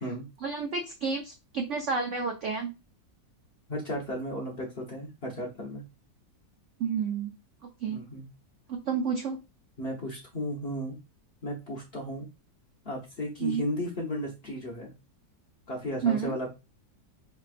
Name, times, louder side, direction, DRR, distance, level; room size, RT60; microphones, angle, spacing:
voice 1, 0.4-2.7 6.8-7.3 7.8-8.0 8.7-9.4 13.4-13.7 16.0-16.4, right 6 dB, 75° right, 3 dB, 0.6 m, -30 dB
voice 2, 3.7-5.8 7.9-8.2 9.8-11.0 11.4-12.3 12.8-14.9 15.7-16.5, left 1 dB, 50° left, -1 dB, 0.7 m, -34 dB
4.6 x 3.2 x 2.4 m, 0.27 s
omnidirectional pair, 1.9 m